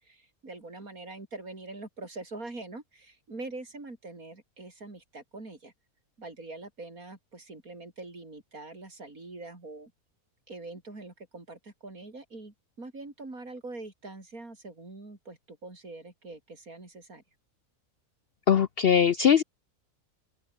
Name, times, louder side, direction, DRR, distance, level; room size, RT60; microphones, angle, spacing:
voice 1, 0.0-5.7 6.2-9.9 10.5-17.2, right 2 dB, 70° right, 5.3 m, -44 dB
voice 2, 18.5-19.4, left 8 dB, 55° left, 0.7 m, -21 dB
open air
omnidirectional pair, 1.5 m